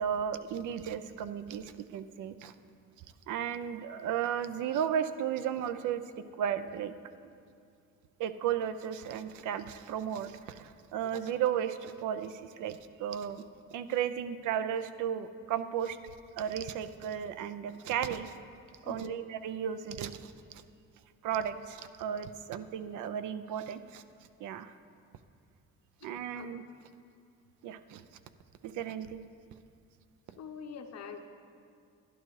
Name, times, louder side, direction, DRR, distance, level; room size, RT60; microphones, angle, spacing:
voice 1, 0.0-2.5 3.3-6.0 6.4-6.9 8.2-13.4 13.7-18.3 18.8-20.3 21.2-24.0 24.4-24.8 26.0-26.6 27.6-28.0 28.6-29.2, right 9 dB, 80° right, 11 dB, 0.5 m, -34 dB
voice 2, 18.8-19.2 26.0-26.1 26.3-26.5 30.4-31.3, left 6 dB, 60° left, 6 dB, 0.8 m, -44 dB
11.5 x 10.5 x 3.2 m, 2.4 s
cardioid pair, 90°, 30 cm